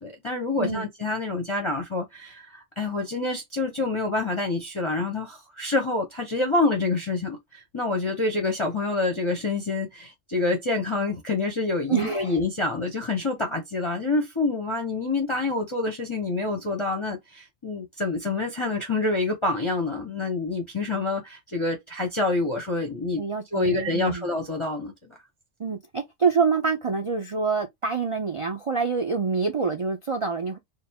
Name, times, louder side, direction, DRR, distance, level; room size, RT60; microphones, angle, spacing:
voice 1, 0.0-23.2 23.5-24.9, left 3 dB, 30° left, 0.7 m, -27 dB
voice 2, 11.9-12.4 23.2-24.3 25.6-30.6, right 5 dB, 50° right, 0.4 m, -26 dB
4.4 x 2.0 x 3.4 m
omnidirectional pair, 1.3 m